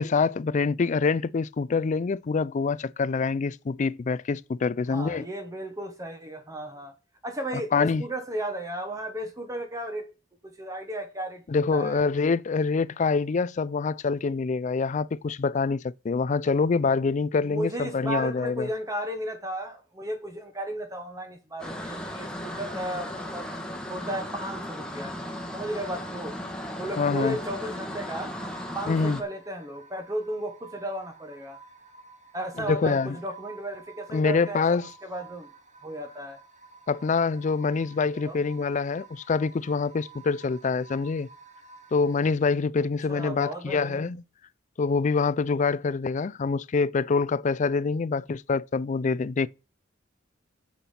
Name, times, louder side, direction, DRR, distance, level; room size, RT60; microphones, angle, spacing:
voice 1, 0.0-5.3 7.7-8.0 11.5-18.7 27.0-27.4 28.9-29.2 32.7-33.2 34.1-34.9 36.9-41.3 41.9-44.2 44.8-49.5, left 4 dB, 40° left, 0.4 m, -25 dB
voice 2, 4.9-6.9 7.2-10.1 10.4-11.4 11.7-12.0 17.4-23.5 23.9-25.1 25.5-26.4 26.8-28.4 28.7-31.6 32.3-35.5 35.8-36.4 38.1-38.4 43.1-44.1, right 1 dB, 20° right, 1.2 m, -34 dB
sound 1, 21.6-29.2, left 1 dB, 5° left, 1.4 m, -36 dB
sound 2, 28.4-42.3, right 5 dB, 40° right, 1.4 m, -51 dB
7.4 x 6.9 x 5.7 m
head